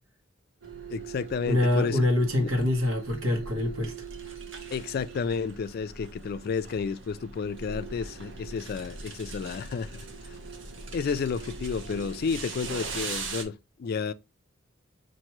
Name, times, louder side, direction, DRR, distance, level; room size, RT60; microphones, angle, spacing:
sound 1, 0.6-13.4, right 4 dB, 65° right, 0.9 m, -40 dB
voice 1, 0.9-2.0 2.4-2.5 4.7-9.9 10.9-14.1, left 5 dB, 50° left, 0.3 m, -31 dB
voice 2, 1.5-3.9, left 1 dB, 85° right, 1.2 m, -25 dB
5.7 x 2.6 x 3.0 m
head